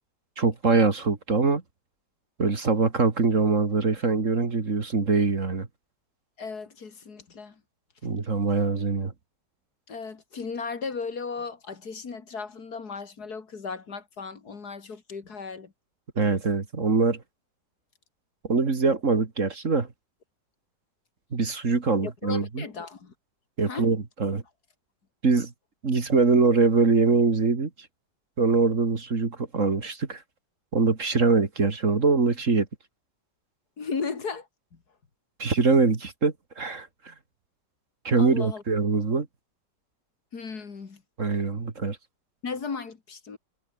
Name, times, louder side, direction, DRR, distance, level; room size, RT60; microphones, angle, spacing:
voice 1, 0.4-1.6 2.4-5.7 8.0-9.1 16.2-17.2 18.5-19.9 21.3-22.6 23.6-24.4 25.2-25.5 25.8-27.7 28.4-30.2 30.7-32.7 35.4-37.1 38.0-39.3 41.2-42.0, right 4 dB, 45° right, 2.6 m, -23 dB
voice 2, 6.4-7.6 9.9-15.7 22.0-23.1 23.7-23.9 33.8-34.5 38.2-38.6 40.3-41.0 42.4-43.4, left 5 dB, 60° left, 2.8 m, -36 dB
omnidirectional pair, 1.9 m